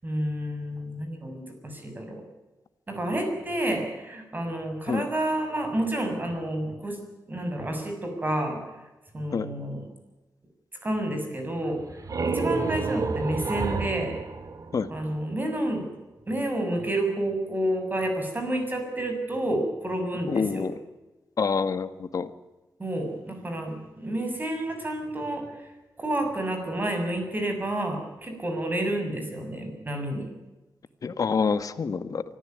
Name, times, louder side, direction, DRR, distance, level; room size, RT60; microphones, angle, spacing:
voice 1, 0.0-2.2 2.9-7.0 7.3-8.6 9.1-9.9 10.8-11.8 12.2-14.1 14.9-15.9 16.3-20.7 22.8-25.4 26.0-30.3, right 1 dB, 25° right, 4 dB, 7.0 m, -29 dB
sound 1, 11.7-15.4, right 4 dB, 55° right, 2.2 m, -30 dB
voice 2, 20.3-20.7 21.4-22.3 31.0-32.2, left 5 dB, 55° left, 12 dB, 1.6 m, -26 dB
24.5 x 15.0 x 9.5 m, 1.1 s
wide cardioid pair, 125°, 7 cm